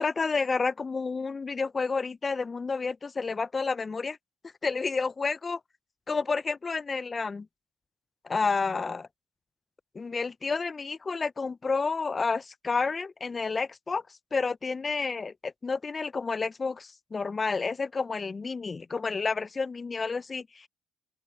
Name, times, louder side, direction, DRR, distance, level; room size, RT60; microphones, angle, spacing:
voice 1, 0.0-4.2 4.6-5.6 6.1-7.5 8.2-9.1 9.9-14.0 14.3-20.7, left 4 dB, 30° left, 0.6 m, -30 dB
open air
supercardioid pair, 70°, 0 cm